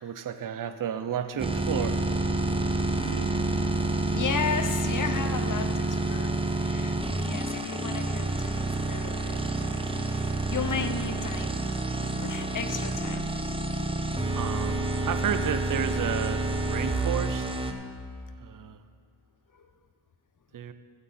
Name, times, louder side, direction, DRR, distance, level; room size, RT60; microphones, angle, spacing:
voice 1, 0.0-2.1 2.5-2.6 13.0-13.2 14.3-17.6 18.4-18.8 20.5-20.7, right 8 dB, 50° right, 11 dB, 0.6 m, -32 dB
sound 1, 1.4-17.7, right 2 dB, 15° right, 0.7 m, -28 dB
voice 2, 4.1-11.6 12.2-13.3 13.7-13.9 19.5-19.7, left 6 dB, 45° left, 8 dB, 0.8 m, -35 dB
15.0 x 7.8 x 4.2 m, 2.3 s
wide cardioid pair, 95°, 43 cm